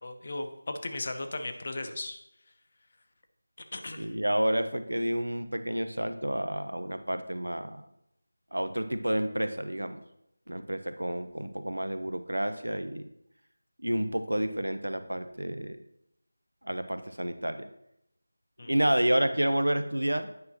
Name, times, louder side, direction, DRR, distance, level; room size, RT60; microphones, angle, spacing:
voice 1, 0.0-2.2 3.7-4.1 18.6-18.8, left 2 dB, 40° left, 7 dB, 0.8 m, -36 dB
voice 2, 4.0-7.9 8.5-10.0 10.5-13.1 13.8-15.8 16.6-17.7 18.6-20.3, right 1 dB, 80° right, 10 dB, 0.7 m, -29 dB
9.6 x 6.0 x 2.9 m, 0.80 s
figure-of-eight pair, 165°, 0 cm